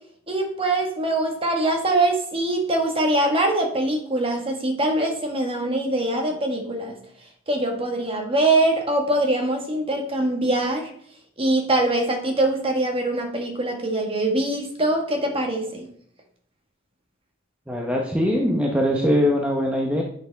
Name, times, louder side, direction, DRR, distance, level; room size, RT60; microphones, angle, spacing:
voice 1, 0.3-7.0 7.5-10.9 11.4-15.8, right 2 dB, 25° right, 2 dB, 1.6 m, -23 dB
voice 2, 17.7-20.0, equal, 5° right, -1 dB, 0.9 m, -21 dB
10.0 x 6.6 x 3.5 m, 0.63 s
head